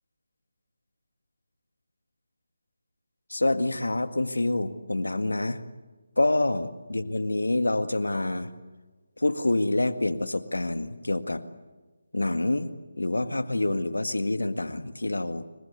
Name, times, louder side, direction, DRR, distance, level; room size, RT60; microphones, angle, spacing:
voice 1, 3.3-5.6 6.2-8.5 9.2-11.4 12.1-12.7 13.0-15.4, left 2 dB, 85° left, 10 dB, 1.9 m, -27 dB
26.5 x 23.5 x 8.3 m, 1.3 s
figure-of-eight pair, 160°, 0 cm